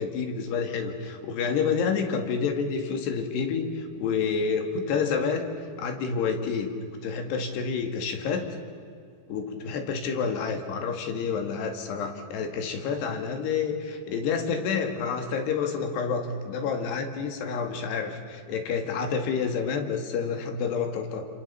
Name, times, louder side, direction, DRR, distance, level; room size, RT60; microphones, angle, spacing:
voice 1, 0.0-5.5 5.8-6.7 7.0-8.5 9.3-21.3, left 5 dB, 75° left, 5 dB, 4.2 m, -29 dB
29.0 x 27.0 x 6.9 m, 2.4 s
omnidirectional pair, 4.8 m